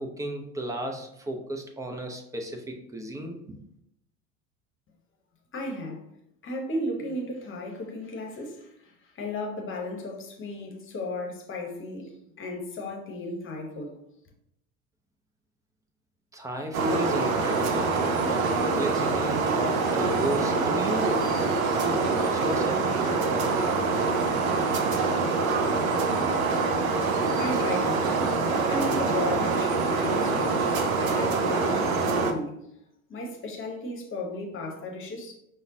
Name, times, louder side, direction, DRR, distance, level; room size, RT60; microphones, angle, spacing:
voice 1, 0.0-3.6 16.3-18.0 18.2-21.3 21.8-23.0, right 1 dB, 10° right, 0.3 m, -33 dB
voice 2, 5.5-6.0 6.4-14.0 27.3-28.1 28.7-32.7 33.1-35.3, left 1 dB, 30° left, 0.9 m, -34 dB
sound 1, 16.7-32.3, right 4 dB, 80° right, 0.5 m, -25 dB
5.0 x 2.1 x 2.6 m
figure-of-eight pair, 70°, 40 cm